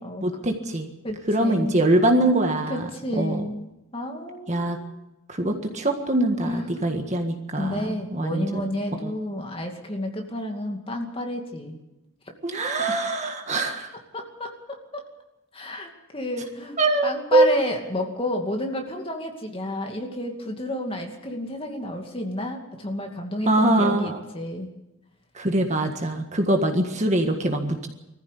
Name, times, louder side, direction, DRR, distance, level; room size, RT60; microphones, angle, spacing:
voice 1, 0.2-0.9 1.3-2.9 3.2-3.5 4.5-4.8 5.3-9.1 12.4-13.9 16.8-17.5 23.5-24.2 25.3-27.9, right 2 dB, 30° right, 4 dB, 1.7 m, -23 dB
voice 2, 1.0-1.8 2.7-5.0 6.4-6.7 7.6-11.8 14.1-15.0 15.5-24.7, left 1 dB, 25° left, 2 dB, 2.4 m, -31 dB
21.0 x 14.5 x 8.4 m, 0.95 s
head